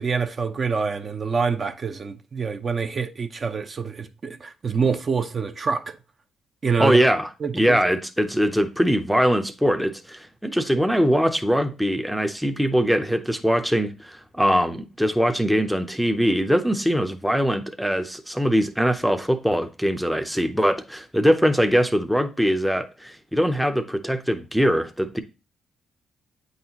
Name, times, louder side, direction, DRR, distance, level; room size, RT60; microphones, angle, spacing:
voice 1, 0.0-5.9 6.6-7.0 7.4-7.8, right 5 dB, 40° right, 0.6 m, -26 dB
voice 2, 6.8-25.2, equal, ahead, 0.6 m, -22 dB
8.3 x 4.0 x 2.9 m
cardioid pair, 90°, 0 cm